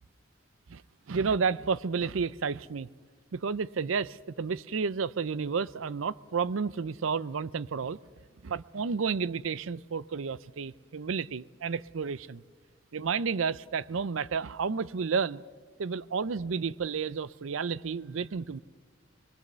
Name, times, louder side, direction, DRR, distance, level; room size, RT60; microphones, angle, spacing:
voice 1, 1.1-2.9 3.3-8.0 8.4-12.4 12.9-15.4 15.8-18.6, right 5 dB, 85° right, 0.5 m, -31 dB
22.0 x 22.0 x 6.8 m
head